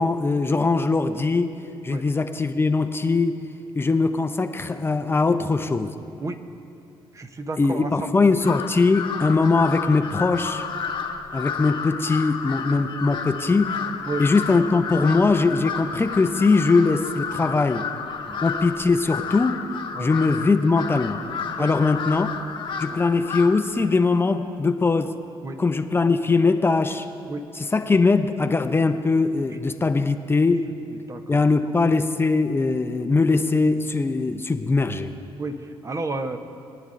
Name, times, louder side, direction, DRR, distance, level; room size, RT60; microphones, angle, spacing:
voice 1, 0.0-1.6 1.8-3.4 3.8-6.0 7.6-10.7 11.3-13.8 14.2-17.9 18.4-19.6 20.0-21.2 21.6-22.3 22.8-25.2 25.6-27.1 27.6-30.7 31.3-35.1, left 3 dB, 25° left, 7 dB, 0.5 m, -21 dB
voice 2, 7.1-8.1 14.0-14.3 17.4-17.6 18.3-18.4 19.9-20.1 21.6-21.7 22.9-23.0 25.4-25.6 27.3-27.5 30.9-31.5 35.4-36.4, right 3 dB, 30° right, 7 dB, 0.7 m, -32 dB
Crow, 8.4-23.8, left 6 dB, 55° left, 0.9 m, -31 dB
22.5 x 9.5 x 2.6 m, 2.6 s
cardioid pair, 85°, 10 cm